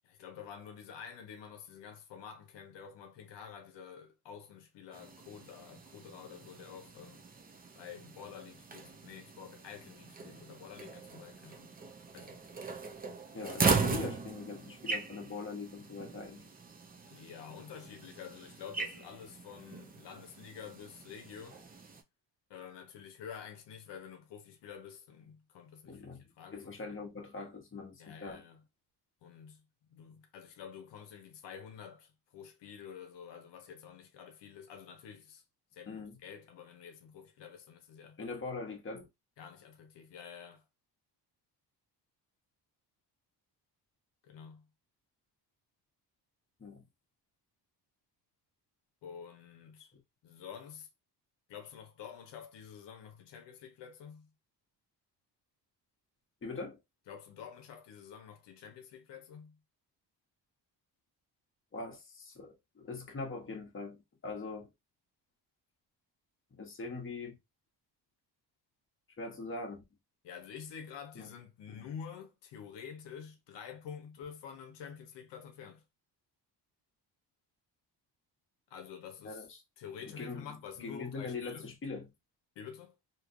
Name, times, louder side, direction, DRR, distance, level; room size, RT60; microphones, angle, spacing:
voice 1, 0.0-7.3 7.8-11.8 12.1-12.4 17.0-21.6 22.5-26.8 28.0-28.6 29.2-35.4 35.7-38.2 39.4-40.6 44.2-44.7 49.0-49.9 50.2-50.9 51.5-54.3 57.1-59.6 70.2-75.8 78.7-79.5 79.8-81.7 82.6-83.0, left 7 dB, 80° left, 0.8 m, -49 dB
sound 1, 4.9-22.0, right 4 dB, 20° right, 0.5 m, -39 dB
voice 2, 13.3-16.5 25.8-26.3 26.5-28.4 35.9-36.2 38.2-39.1 46.6-46.9 49.9-50.0 56.4-56.8 61.7-64.7 66.5-67.4 69.2-69.8 71.1-71.3 71.7-71.9 79.2-79.6 80.0-80.5 80.8-82.1, left 3 dB, 30° left, 1.1 m, -42 dB
3.1 x 2.8 x 2.5 m
cardioid pair, 115°, 42 cm